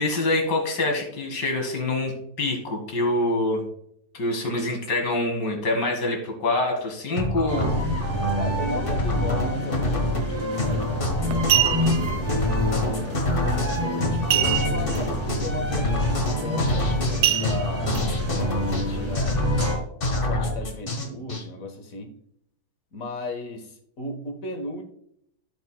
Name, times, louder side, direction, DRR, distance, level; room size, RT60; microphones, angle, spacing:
voice 1, 0.0-3.7 4.1-7.7, left 2 dB, 80° left, 2 dB, 2.4 m, -25 dB
sound 1, 7.2-21.4, left 1 dB, 35° left, 1.2 m, -26 dB
sound 2, 7.5-19.8, equal, 15° right, 1.9 m, -29 dB
voice 2, 8.3-12.4 12.7-13.2 13.7-17.9 18.3-19.4 20.2-22.2 22.9-24.8, left 2 dB, 55° left, 4 dB, 1.6 m, -36 dB
sound 3, 10.6-10.8 11.3-12.1 14.3-15.0 15.3-15.4 15.9-16.1 17.2-18.0 18.6-18.7, right 12 dB, 80° right, 0.6 m, -23 dB
15.5 x 5.2 x 2.2 m, 0.71 s
omnidirectional pair, 1.8 m